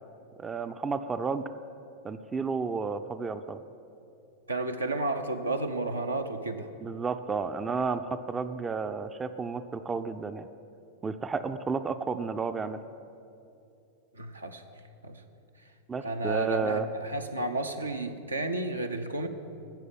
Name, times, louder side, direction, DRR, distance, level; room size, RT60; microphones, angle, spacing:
voice 1, 0.4-1.5 2.0-3.6 6.8-10.5 11.0-12.8 15.9-16.9, right 5 dB, 15° right, 10 dB, 0.5 m, -32 dB
voice 2, 4.5-6.7 14.2-14.6 15.0-15.2 16.0-19.3, right 2 dB, 80° right, 5 dB, 0.8 m, -32 dB
13.0 x 7.8 x 8.1 m, 2.6 s
figure-of-eight pair, 90°, 0 cm